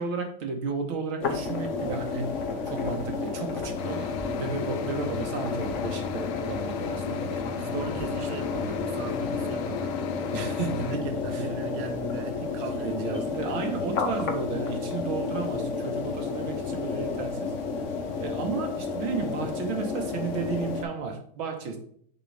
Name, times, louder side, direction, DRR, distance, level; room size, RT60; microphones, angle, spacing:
voice 1, 0.0-2.3 2.7-7.4 10.3-11.5 12.6-17.5 18.2-21.8, right 4 dB, 80° right, 1.9 m, -33 dB
sound 1, 1.2-20.8, left 4 dB, 50° left, 1.0 m, -31 dB
sound 2, 3.8-11.0, left 7 dB, 90° left, 1.5 m, -37 dB
voice 2, 7.2-10.1 10.7-13.6, right 5 dB, 65° right, 1.2 m, -38 dB
6.6 x 4.5 x 3.3 m
omnidirectional pair, 2.2 m